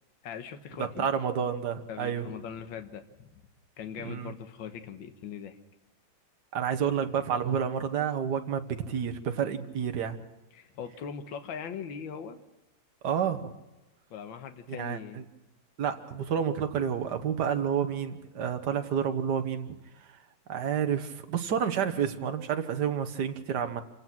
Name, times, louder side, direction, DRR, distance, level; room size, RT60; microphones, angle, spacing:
voice 1, 0.2-1.1 1.9-3.4 3.8-5.6 10.5-12.4 14.1-15.2, left 7 dB, 65° left, 8 dB, 1.9 m, -40 dB
voice 2, 0.8-2.3 4.0-4.3 6.5-10.2 13.0-13.5 14.8-15.2 15.8-19.7 20.5-23.8, right 8 dB, 55° right, 7 dB, 1.7 m, -29 dB
26.5 x 17.0 x 6.1 m, 1.1 s
omnidirectional pair, 2.3 m